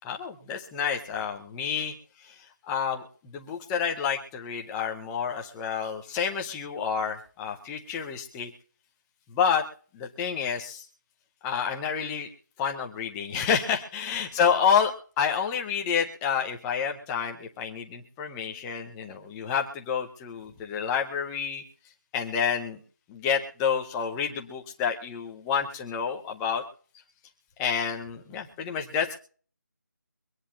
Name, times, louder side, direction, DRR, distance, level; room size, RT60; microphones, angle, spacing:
voice 1, 0.0-1.9 2.7-3.0 3.3-8.5 9.3-9.6 9.9-10.8 11.4-12.3 12.6-21.6 22.1-22.8 23.1-26.6 27.6-29.1, left 7 dB, 5° left, 2 dB, 0.5 m, -29 dB
24.0 x 10.0 x 2.8 m, 0.43 s
figure-of-eight pair, 175°, 10 cm